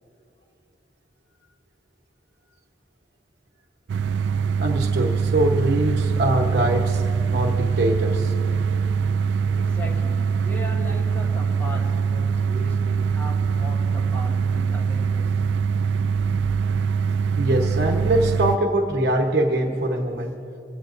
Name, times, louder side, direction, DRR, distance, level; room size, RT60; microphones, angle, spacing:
sound 1, 3.9-18.6, right 5 dB, 80° right, 0.4 m, -23 dB
voice 1, 4.6-7.0 7.3-8.3 17.0-20.3, right 1 dB, 60° right, 1 dB, 1.0 m, -23 dB
voice 2, 9.5-15.6, equal, 10° left, -1 dB, 1.5 m, -38 dB
24.0 x 16.5 x 2.6 m, 2.7 s
head